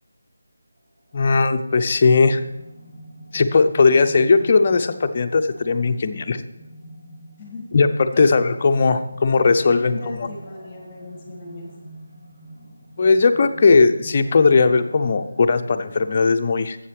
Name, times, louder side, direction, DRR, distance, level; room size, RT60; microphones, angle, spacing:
sound 1, 0.8-16.1, right 1 dB, 35° right, 3.3 m, -44 dB
voice 1, 1.1-2.4 3.3-6.4 7.7-10.3 13.0-16.8, left 4 dB, 40° left, 7 dB, 0.6 m, -18 dB
voice 2, 9.6-11.7, left 1 dB, 10° left, -2 dB, 1.9 m, -36 dB
12.0 x 7.8 x 3.3 m, 1.0 s
figure-of-eight pair, 160°, 0 cm